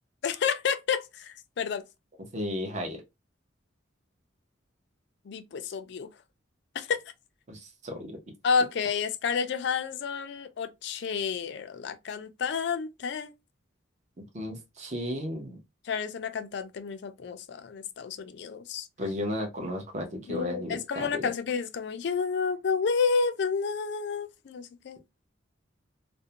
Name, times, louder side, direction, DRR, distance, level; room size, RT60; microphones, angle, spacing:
voice 1, 0.2-1.8 5.3-6.1 6.7-7.0 8.4-13.3 15.9-18.9 20.3-25.0, left 5 dB, 60° left, 0.4 m, -30 dB
voice 2, 2.3-3.0 7.5-8.2 14.2-15.6 19.0-21.3, left 1 dB, 40° right, 0.7 m, -34 dB
2.5 x 2.1 x 2.7 m
head